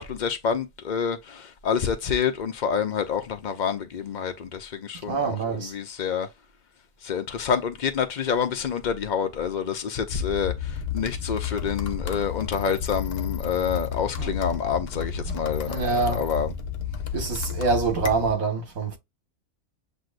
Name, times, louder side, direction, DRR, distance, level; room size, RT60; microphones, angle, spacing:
voice 1, 0.0-6.3 7.0-16.5, left 7 dB, 85° left, 0.4 m, -28 dB
voice 2, 5.1-5.7 14.2-14.3 15.3-15.4 15.6-16.2 17.1-19.0, right 4 dB, 60° right, 1.8 m, -25 dB
sound 1, 10.1-18.3, left 7 dB, 55° left, 0.8 m, -32 dB
7.6 x 2.6 x 2.4 m
omnidirectional pair, 1.6 m